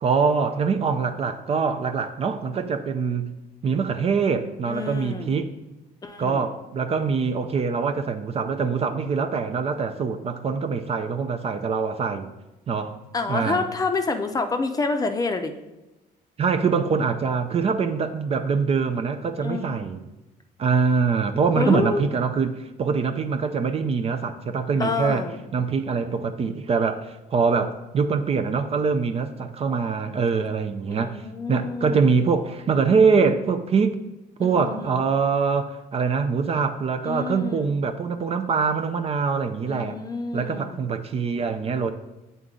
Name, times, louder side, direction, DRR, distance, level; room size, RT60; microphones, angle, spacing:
voice 1, 0.0-3.3 3.6-5.5 6.2-12.3 12.7-13.0 13.3-13.6 16.4-20.0 20.6-25.2 25.5-31.2 31.5-34.0 34.4-40.0 40.3-41.9, right 5 dB, 35° right, 7 dB, 0.5 m, -24 dB
voice 2, 4.7-5.4 6.0-6.5 13.1-15.5 19.4-19.9 21.5-22.0 24.8-25.4 30.9-32.4 34.4-35.0 37.0-37.8 39.7-40.8, left 3 dB, 20° left, 6 dB, 0.6 m, -28 dB
8.1 x 4.0 x 3.7 m, 1.0 s
cardioid pair, 110°, 17 cm